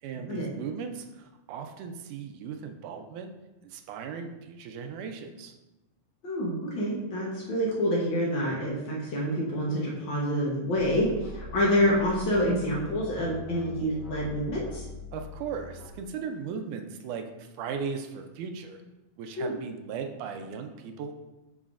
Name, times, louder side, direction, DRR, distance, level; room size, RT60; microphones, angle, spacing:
voice 1, 0.0-3.3 3.6-5.5 15.1-18.8 19.2-21.1, right 6 dB, 80° right, 5 dB, 1.9 m, -37 dB
voice 2, 6.2-14.8 19.4-19.5, equal, 90° left, -4 dB, 1.0 m, -27 dB
sound 1, 10.7-15.9, left 2 dB, 55° left, 2.8 m, -43 dB
10.0 x 4.2 x 2.5 m, 1.0 s
omnidirectional pair, 3.8 m